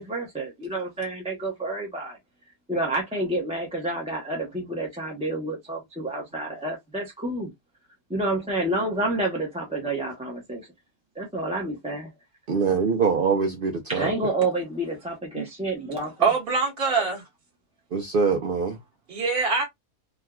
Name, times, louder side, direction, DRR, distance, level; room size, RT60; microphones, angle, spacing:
voice 1, 0.0-2.2 2.7-7.5 8.1-10.7 11.2-12.1 13.9-16.3, right 2 dB, 5° right, 0.6 m, -29 dB
voice 2, 12.5-14.1 15.3-15.4 17.9-18.7, right 5 dB, 70° right, 0.5 m, -23 dB
voice 3, 16.2-17.2 19.1-19.6, right 4 dB, 40° right, 1.5 m, -23 dB
3.4 x 2.3 x 2.3 m
omnidirectional pair, 1.5 m